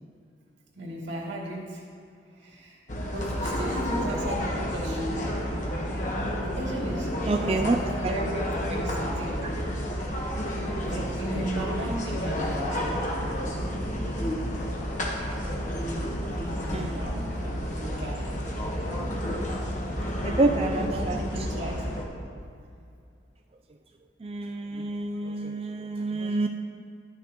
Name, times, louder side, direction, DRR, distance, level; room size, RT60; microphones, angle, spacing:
voice 1, 0.8-1.8 2.3-2.8 3.1-5.3 6.4-9.4 10.5-12.9 16.3-18.3 20.8-21.9, right 1 dB, 90° right, -4 dB, 2.4 m, -36 dB
sound 1, 2.9-22.0, equal, 45° left, 1.2 m, -30 dB
voice 2, 7.3-7.8 16.7-16.9 20.2-21.2 24.2-26.5, right 2 dB, 30° right, 4 dB, 0.3 m, -27 dB
12.0 x 10.0 x 3.0 m, 2.4 s
head